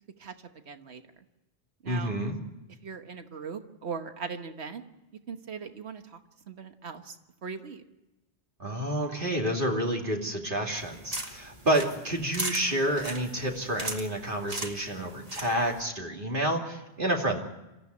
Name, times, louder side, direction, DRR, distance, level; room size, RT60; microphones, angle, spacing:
voice 1, 0.7-1.0 1.8-2.1 2.8-4.8 5.3-6.2 6.5-7.2 7.4-7.8, right 5 dB, 90° right, 7 dB, 1.5 m, -39 dB
voice 2, 1.9-2.3 8.6-17.4, right 1 dB, 50° right, 0 dB, 2.9 m, -29 dB
sound 1, 10.8-15.8, right 1 dB, 35° right, 2.3 m, -39 dB
26.0 x 15.0 x 9.6 m, 1.0 s
omnidirectional pair, 1.1 m